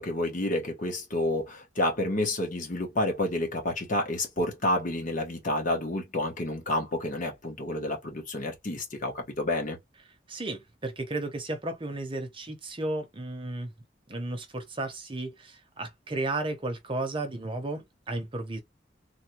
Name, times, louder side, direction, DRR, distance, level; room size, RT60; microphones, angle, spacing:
voice 1, 0.0-9.8, left 1 dB, 50° left, 1.2 m, -29 dB
voice 2, 10.3-13.7 14.1-18.6, right 2 dB, 30° right, 0.7 m, -34 dB
3.4 x 2.2 x 2.9 m
head